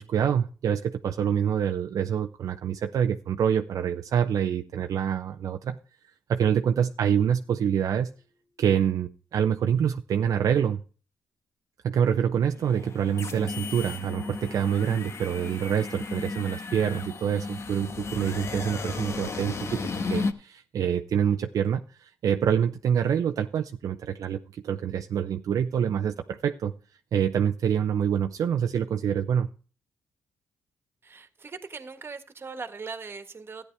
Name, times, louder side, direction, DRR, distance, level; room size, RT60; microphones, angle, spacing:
voice 1, 0.0-5.8 6.3-8.1 8.6-10.8 11.8-19.8 20.1-26.7 27.1-29.5, right 8 dB, 70° right, 6 dB, 0.6 m, -26 dB
sound 1, 12.6-20.3, left 4 dB, 50° left, 1.3 m, -34 dB
voice 2, 31.0-33.7, right 4 dB, 40° right, 9 dB, 1.5 m, -40 dB
13.5 x 9.6 x 3.4 m, 0.37 s
cardioid pair, 70°, 6 cm